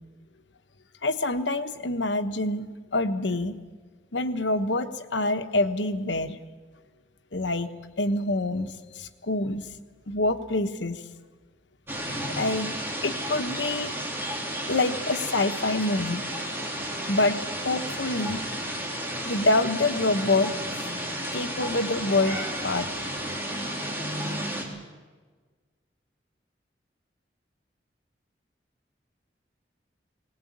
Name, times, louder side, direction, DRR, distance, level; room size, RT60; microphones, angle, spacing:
voice 1, 1.0-2.7 2.9-3.6 4.1-6.4 7.3-7.7 8.0-8.7 9.0-9.7 10.1-11.0 12.4-12.7 13.0-13.9 14.7-16.2 17.1-18.4 19.2-20.5 21.3-22.9, left 2 dB, 90° left, 9 dB, 1.2 m, -26 dB
sound 1, 11.9-24.6, equal, 10° right, 3.5 m, -32 dB
20.0 x 19.0 x 8.7 m, 1.4 s
head